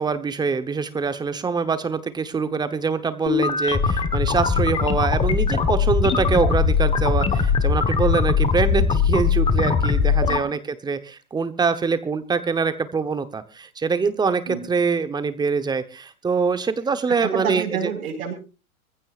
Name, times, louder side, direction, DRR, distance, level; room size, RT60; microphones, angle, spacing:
voice 1, 0.0-17.9, right 5 dB, 10° right, 12 dB, 1.0 m, -24 dB
sound 1, 3.3-10.4, left 6 dB, 10° left, 1.3 m, -20 dB
voice 2, 17.2-18.3, right 7 dB, 70° right, 5 dB, 5.4 m, -29 dB
23.5 x 15.5 x 2.5 m, 0.30 s
hypercardioid pair, 140°, 44 cm